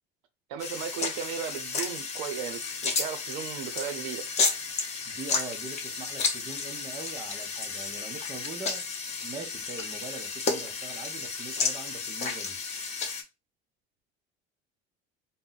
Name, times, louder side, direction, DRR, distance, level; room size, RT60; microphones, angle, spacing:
voice 1, 0.5-4.2, right 9 dB, 85° right, 0.6 m, -36 dB
sound 1, 0.6-13.2, left 4 dB, 30° left, 0.7 m, -32 dB
voice 2, 5.1-12.6, right 4 dB, 20° right, 0.7 m, -42 dB
2.6 x 2.1 x 3.8 m
cardioid pair, 140°, 21 cm